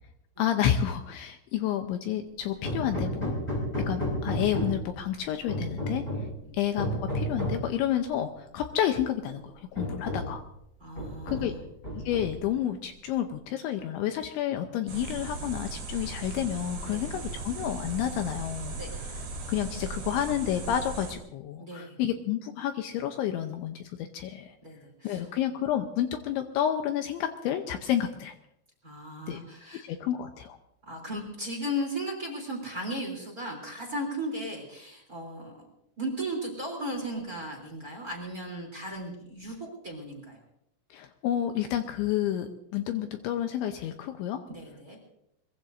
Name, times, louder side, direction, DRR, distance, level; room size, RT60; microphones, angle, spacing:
voice 1, 0.4-3.3 3.9-6.1 6.5-10.4 11.3-11.5 12.0-18.8 19.0-19.1 19.5-24.6 25.0-28.3 29.3-29.4 29.8-30.6 40.9-44.4, left 10 dB, 80° left, 6 dB, 2.9 m, -30 dB
Hammer, 2.6-4.9 5.5-6.4 6.8-7.7 8.7-8.8 9.2-9.3 9.7-10.4 11.0-11.6 11.8-12.5, equal, 10° left, 5.6 m, -32 dB
voice 2, 10.8-11.6 16.9-17.1 18.7-18.9 21.6-22.0 24.6-25.2 28.8-29.8 30.9-35.7 36.0-40.4 44.5-45.0, equal, 20° right, 2 dB, 3.0 m, -36 dB
sound 1, 14.9-21.2, right 3 dB, 40° right, 5.0 m, -38 dB
22.5 x 22.5 x 2.7 m, 0.77 s
omnidirectional pair, 5.8 m